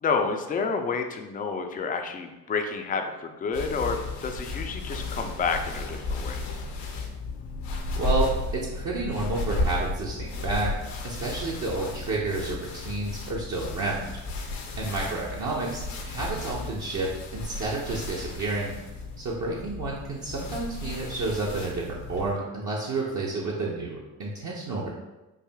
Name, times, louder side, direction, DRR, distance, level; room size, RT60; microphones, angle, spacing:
voice 1, 0.0-6.4, left 5 dB, 20° left, 5 dB, 0.4 m, -29 dB
sound 1, 3.5-22.3, left 2 dB, 65° left, 0.8 m, -34 dB
voice 2, 8.0-8.3 8.7-10.7 11.0-14.0 14.8-18.7 19.2-24.9, right 3 dB, 40° right, -4 dB, 0.8 m, -30 dB
4.8 x 2.5 x 2.3 m, 1.0 s
hypercardioid pair, 55°, 45 cm